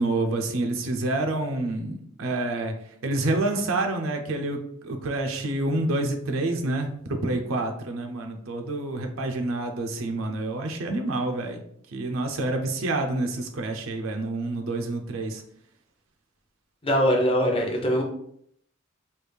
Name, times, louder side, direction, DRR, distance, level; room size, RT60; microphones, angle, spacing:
voice 1, 0.0-2.7 3.0-11.6 11.9-15.4, right 2 dB, 85° right, 4 dB, 0.5 m, -28 dB
voice 2, 16.8-18.0, equal, 25° left, 1 dB, 0.6 m, -22 dB
3.3 x 2.3 x 3.3 m, 0.69 s
head